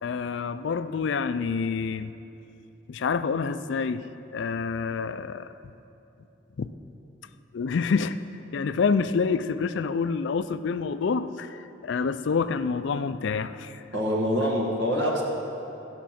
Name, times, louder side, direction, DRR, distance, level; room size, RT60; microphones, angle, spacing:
voice 1, 0.0-2.1 2.9-4.0 4.3-5.5 6.6-6.7 7.5-8.2 8.5-13.8, left 5 dB, 60° left, 12 dB, 0.4 m, -27 dB
voice 2, 13.9-15.2, equal, 60° right, -3 dB, 1.8 m, -25 dB
15.5 x 6.0 x 5.9 m, 2.9 s
head